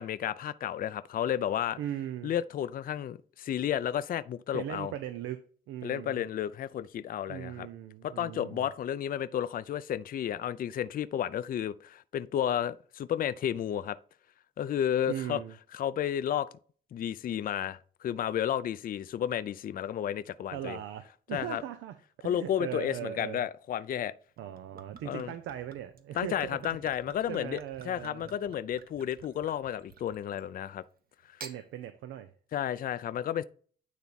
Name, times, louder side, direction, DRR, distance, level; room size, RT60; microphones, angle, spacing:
voice 1, 0.0-1.8 2.2-4.9 5.8-7.7 8.0-14.0 14.6-15.4 15.7-16.5 16.9-20.8 21.3-21.6 22.2-24.1 25.1-25.3 26.1-30.8 32.5-33.4, left 10 dB, 45° left, 0.4 m, -32 dB
voice 2, 1.8-2.3 4.5-6.2 7.3-8.7 15.1-15.5 20.5-23.4 24.4-26.6 27.3-28.3 31.4-32.3, right 11 dB, 85° right, 0.6 m, -39 dB
Gurgling / Chink clink / Liquid, 24.4-30.5 31.2-31.6, right 6 dB, 50° right, 1.0 m, -51 dB
9.4 x 3.4 x 4.0 m
cardioid pair, 90°, 20 cm